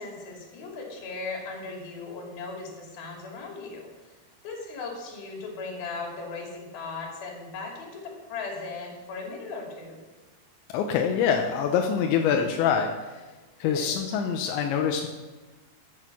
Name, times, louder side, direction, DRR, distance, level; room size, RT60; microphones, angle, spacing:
voice 1, 0.0-4.1 4.4-8.0 8.3-10.0 12.1-12.5 13.6-13.9, left 3 dB, 60° left, 0 dB, 4.4 m, -37 dB
voice 2, 10.7-13.2 13.6-15.1, left 7 dB, 85° left, 3 dB, 3.2 m, -25 dB
14.0 x 8.9 x 6.0 m, 1.2 s
omnidirectional pair, 5.1 m